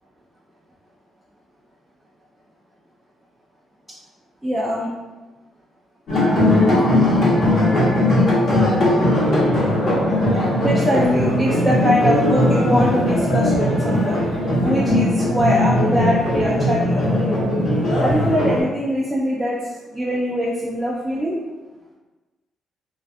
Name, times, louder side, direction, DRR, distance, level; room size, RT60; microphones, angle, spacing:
voice 1, 4.4-4.9 10.6-14.2 14.6-17.2 18.0-19.6 19.9-21.3, equal, 5° right, -6 dB, 0.4 m, -22 dB
sound 1, 6.1-18.6, left 1 dB, 60° left, 1.1 m, -18 dB
2.5 x 2.3 x 2.3 m, 1.2 s
cardioid pair, 90°, 0 cm